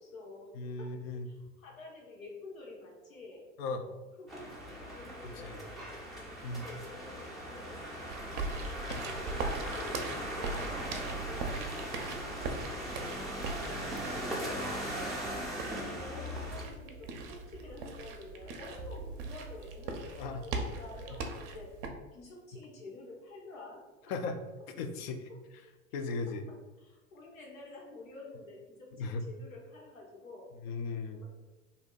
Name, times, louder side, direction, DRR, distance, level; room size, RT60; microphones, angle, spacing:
voice 1, 0.0-0.5 0.8-0.9 1.2-3.4 3.8-6.0 6.5-11.6 12.1-13.5 14.2-14.6 15.0-21.7 22.1-24.1 25.3-25.7 26.1-26.2 26.5-30.5 31.0-31.2, left 2 dB, 85° left, -2 dB, 1.0 m, -49 dB
voice 2, 0.6-1.2 3.6-3.8 5.5-5.6 6.4-6.6 13.7-13.9 14.6-14.8 20.2-20.4 24.1-24.4 24.8-25.3 25.9-26.4 29.0-29.2 30.6-31.2, left 4 dB, 50° left, 8 dB, 0.5 m, -36 dB
sound 1, 4.3-16.7, right 1 dB, ahead, 0.5 m, -39 dB
sound 2, 8.1-21.9, right 3 dB, 45° right, 0.6 m, -40 dB
2.7 x 2.1 x 3.8 m, 1.1 s
hypercardioid pair, 95°, 40 cm